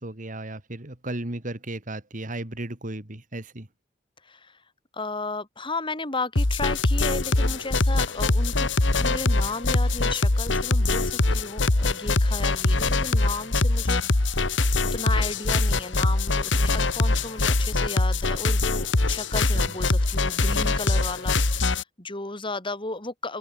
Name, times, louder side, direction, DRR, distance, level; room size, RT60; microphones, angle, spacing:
voice 1, 0.0-3.7 19.5-19.7, right 1 dB, 45° right, 2.5 m, -35 dB
voice 2, 4.2-4.6 4.9-8.7 9.0-14.6 14.9-23.4, left 3 dB, 30° left, 4.4 m, -34 dB
sound 1, 6.4-21.8, left 2 dB, 85° left, 1.6 m, -23 dB
open air
head